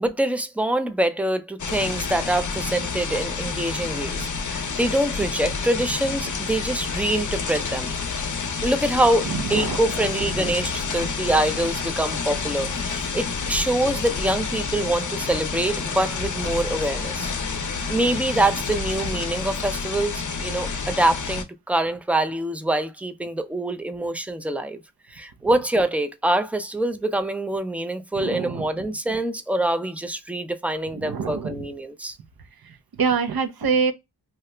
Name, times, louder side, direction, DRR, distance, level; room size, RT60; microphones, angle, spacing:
voice 1, 0.0-7.9 8.6-17.3 17.9-24.8 25.1-32.2, right 1 dB, 5° right, 0.4 m, -25 dB
sound 1, 1.6-21.4, left 5 dB, 45° left, 0.6 m, -29 dB
voice 2, 9.2-9.8 10.3-10.5 11.0-11.1 28.2-28.7 30.9-31.7 32.6-33.9, right 5 dB, 60° right, 0.7 m, -26 dB
2.8 x 2.3 x 3.2 m
wide cardioid pair, 80°, 41 cm